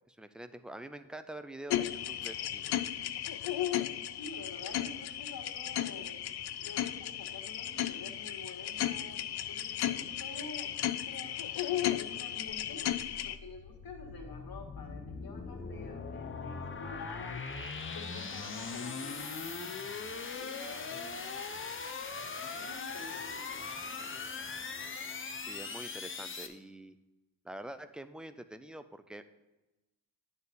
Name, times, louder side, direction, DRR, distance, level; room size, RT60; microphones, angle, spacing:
voice 1, 0.1-2.8 25.3-27.0 27.4-29.2, right 1 dB, ahead, 11 dB, 0.4 m, -46 dB
sound 1, 1.7-13.4, left 12 dB, 80° left, 0.5 m, -35 dB
voice 2, 4.2-6.2 6.6-12.8 13.2-17.4 17.9-19.4 20.4-21.1 22.5-23.7, left 3 dB, 60° left, 1 dB, 1.9 m, -48 dB
sound 2, 12.6-26.5, left 4 dB, 30° left, 0.7 m, -40 dB
9.5 x 4.1 x 6.9 m, 1.0 s
cardioid pair, 95°, 39 cm